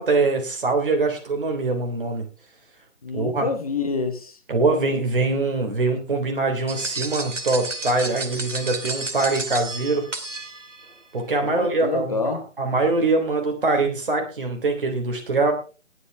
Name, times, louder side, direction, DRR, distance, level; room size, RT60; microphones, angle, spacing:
voice 1, 0.0-2.2 3.1-3.5 4.5-10.1 11.1-15.5, right 3 dB, 45° right, 3 dB, 3.6 m, -23 dB
voice 2, 3.0-4.4 11.4-12.4, left 4 dB, 30° left, 7 dB, 1.4 m, -27 dB
sound 1, 6.7-10.9, right 3 dB, 70° right, 2.5 m, -32 dB
20.0 x 8.5 x 3.5 m, 0.34 s
figure-of-eight pair, 160°, 38 cm